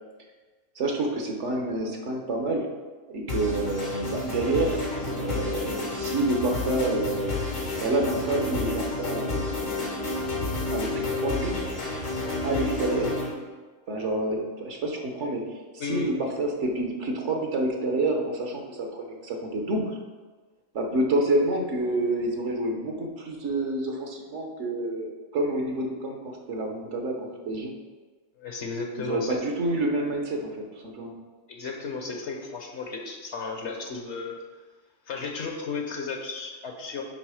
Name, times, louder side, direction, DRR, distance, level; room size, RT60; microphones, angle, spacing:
voice 1, 0.7-2.7 3.1-7.4 7.8-10.0 10.7-11.7 12.4-13.2 13.9-20.0 20.7-27.7 29.0-30.6 30.8-31.1, right 2 dB, 70° right, 2 dB, 1.4 m, -28 dB
sound 1, 3.3-13.3, left 2 dB, 85° left, 2.1 m, -30 dB
voice 2, 15.8-16.1 28.4-29.4 31.5-34.4 35.1-37.0, left 4 dB, 65° left, 2 dB, 1.3 m, -34 dB
10.0 x 3.6 x 4.9 m, 1.4 s
omnidirectional pair, 1.3 m